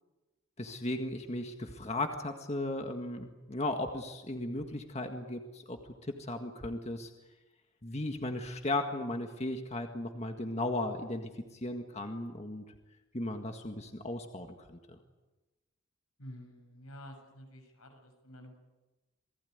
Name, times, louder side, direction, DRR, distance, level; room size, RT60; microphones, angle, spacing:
voice 1, 0.6-7.1 7.8-12.6 13.1-15.0, left 2 dB, 30° left, 5 dB, 1.8 m, -36 dB
voice 2, 16.2-18.7, equal, 85° left, 4 dB, 7.3 m, -50 dB
28.0 x 19.5 x 9.6 m, 1.1 s
head